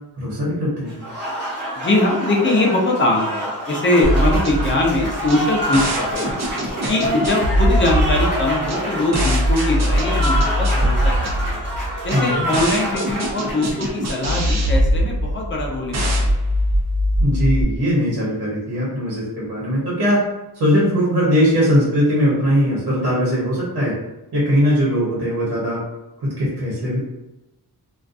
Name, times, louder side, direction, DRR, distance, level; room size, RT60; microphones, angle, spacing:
voice 1, 0.2-1.0 11.9-12.4 17.2-20.2 20.5-24.0 24.3-25.8 26.2-27.0, equal, 75° right, -6 dB, 0.9 m, -20 dB
Applause, 0.9-14.5, equal, 25° right, 1.0 m, -27 dB
voice 2, 1.8-6.4 6.9-11.6 12.0-16.4, left 2 dB, 30° left, -1 dB, 0.5 m, -21 dB
sound 1, 4.0-17.6, equal, 45° right, 0.5 m, -21 dB
2.4 x 2.3 x 2.5 m, 1.0 s
wide cardioid pair, 150°, 39 cm